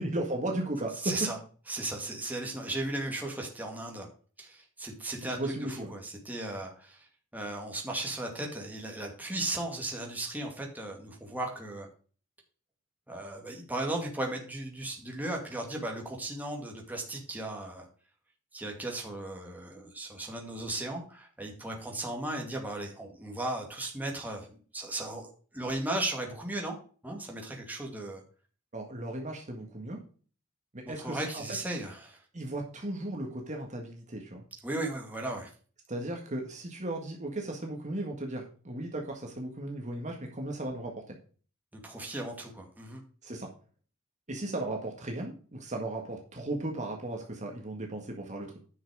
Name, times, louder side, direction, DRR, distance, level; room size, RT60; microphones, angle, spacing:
voice 1, 0.0-1.2 5.2-5.9 28.7-30.0 30.7-31.4 32.3-34.4 35.9-41.1 43.2-43.5 44.3-48.6, right 1 dB, 35° right, 1 dB, 1.8 m, -36 dB
voice 2, 1.0-1.4 1.7-4.1 4.4-7.1 7.3-11.9 13.1-17.9 18.5-25.3 25.5-26.8 27.0-28.2 30.9-32.2 34.6-35.5 41.8-43.0, right 2 dB, 10° right, 0 dB, 2.2 m, -36 dB
10.0 x 6.0 x 4.8 m, 0.40 s
head